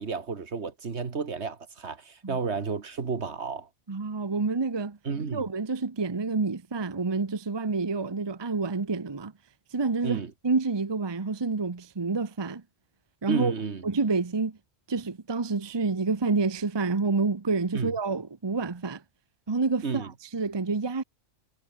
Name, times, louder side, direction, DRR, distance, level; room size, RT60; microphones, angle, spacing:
voice 1, 0.0-3.7 5.1-5.5 10.0-10.3 13.3-13.9 17.7-17.9 19.8-20.1, right 5 dB, 60° right, 1.9 m, -32 dB
voice 2, 3.9-5.0 5.3-9.3 9.7-12.6 13.2-13.5 13.8-14.6 14.9-19.0 19.5-21.0, right 4 dB, 25° right, 0.8 m, -28 dB
omnidirectional pair, 1.3 m